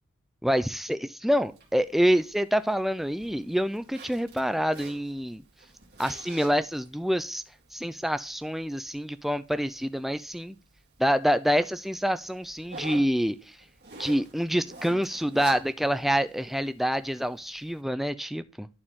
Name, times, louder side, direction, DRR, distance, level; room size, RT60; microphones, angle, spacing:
voice 1, 0.4-5.4 6.0-7.4 7.7-10.6 11.0-13.6 14.0-18.7, equal, ahead, 0.4 m, -27 dB
Zipper (clothing), 1.3-17.8, right 4 dB, 50° right, 2.5 m, -48 dB
11.5 x 4.5 x 3.5 m
head